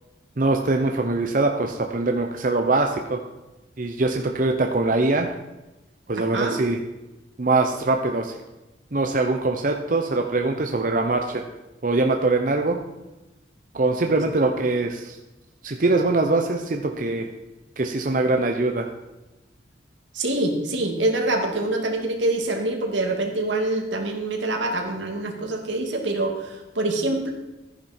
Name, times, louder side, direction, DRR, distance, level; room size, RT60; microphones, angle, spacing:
voice 1, 0.4-3.2 3.8-5.3 6.1-6.8 7.4-8.4 8.9-11.4 11.8-12.8 13.7-15.2 15.6-17.3 17.8-18.9, right 2 dB, 45° right, 3 dB, 0.8 m, -22 dB
voice 2, 6.2-6.6 20.1-27.3, right 2 dB, 85° right, 2 dB, 2.4 m, -25 dB
14.0 x 10.5 x 4.4 m, 1.0 s
head